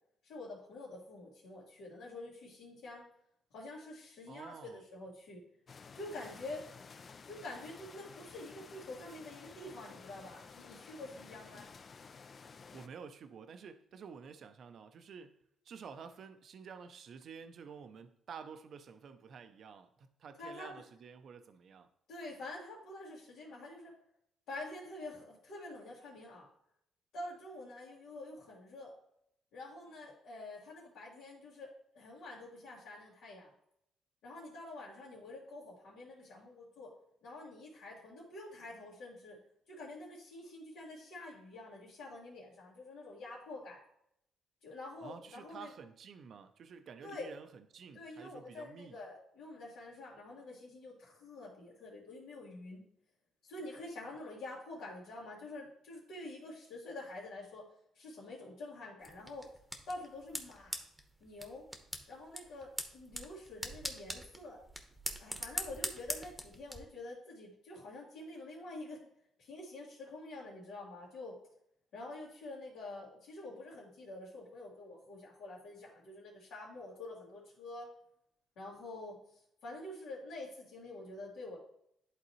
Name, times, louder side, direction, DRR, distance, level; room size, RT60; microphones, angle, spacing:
voice 1, 0.2-3.0 3.5-5.4 5.9-6.6 7.3-11.7 20.4-20.8 22.1-23.9 24.5-26.5 27.1-28.9 29.5-31.7 31.9-33.5 34.2-36.9 37.2-39.4 39.7-43.8 44.6-45.7 47.0-47.3 47.9-52.8 53.4-57.6 57.9-59.5 59.9-60.8 61.2-61.7 62.1-64.6 65.2-69.0 69.4-71.4 71.9-77.9 78.6-81.6, left 2 dB, 85° left, 2.3 m, -47 dB
voice 2, 4.3-4.8 12.7-15.4 15.6-21.9 45.0-49.0, right 6 dB, 60° right, 0.5 m, -50 dB
sound 1, 5.7-12.9, left 5 dB, 45° left, 0.4 m, -53 dB
sound 2, 59.0-66.8, equal, 5° right, 1.0 m, -43 dB
11.0 x 3.9 x 3.0 m
cardioid pair, 90°, 0 cm